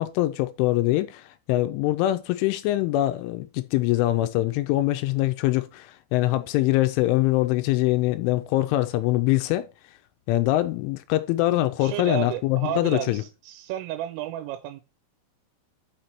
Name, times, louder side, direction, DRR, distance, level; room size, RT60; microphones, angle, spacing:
voice 1, 0.0-9.7 10.3-13.2, left 16 dB, 85° left, 2.9 m, -23 dB
voice 2, 11.8-14.8, right 12 dB, 90° right, 3.2 m, -32 dB
6.6 x 5.8 x 4.4 m
omnidirectional pair, 5.8 m